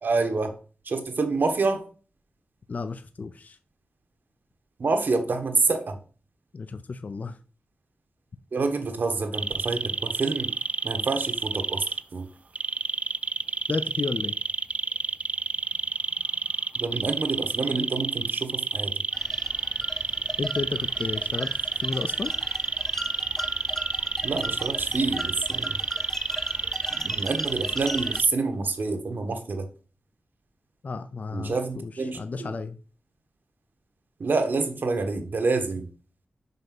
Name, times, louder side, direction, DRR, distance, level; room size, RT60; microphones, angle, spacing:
voice 1, 0.0-0.6 0.8-1.8 4.8-6.0 8.5-10.5 10.8-11.9 12.1-12.3 16.7-19.0 24.2-25.8 26.9-29.7 31.3-32.5 34.2-35.9, right 3 dB, 60° right, 1.3 m, -27 dB
voice 2, 2.7-3.6 6.5-7.4 13.7-14.3 20.4-22.3 30.8-32.8, left 4 dB, 45° left, 0.5 m, -32 dB
sound 1, 9.3-12.0 12.6-28.3, right 4 dB, 40° right, 0.3 m, -29 dB
sound 2, 19.1-28.2, left 1 dB, 10° left, 0.7 m, -39 dB
6.0 x 5.5 x 6.0 m
wide cardioid pair, 140°, 4 cm